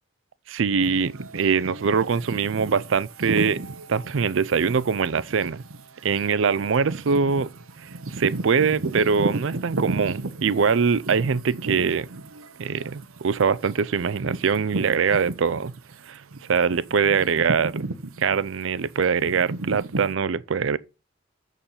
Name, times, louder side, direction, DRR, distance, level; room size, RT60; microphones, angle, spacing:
voice 1, 0.5-3.6 3.9-5.6 6.0-7.5 7.8-12.1 12.6-15.7 16.0-17.7 18.2-20.8, right 5 dB, 65° right, 0.4 m, -23 dB
sound 1, 0.8-15.9 16.3-20.1, right 2 dB, 85° right, 0.9 m, -34 dB
7.2 x 6.7 x 5.6 m
head